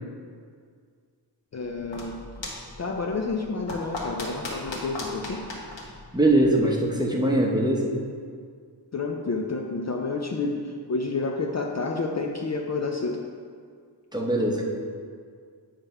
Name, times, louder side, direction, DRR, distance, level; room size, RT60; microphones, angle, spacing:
voice 1, 1.5-2.2 2.8-5.4 8.9-13.2, left 3 dB, 40° left, 1 dB, 0.5 m, -29 dB
sound 1, 1.6-6.9, left 2 dB, 85° left, 1.5 m, -38 dB
voice 2, 6.1-7.9 14.1-14.6, right 1 dB, 10° right, -2 dB, 0.8 m, -22 dB
8.8 x 3.5 x 5.4 m, 2.1 s
wide cardioid pair, 150°, 43 cm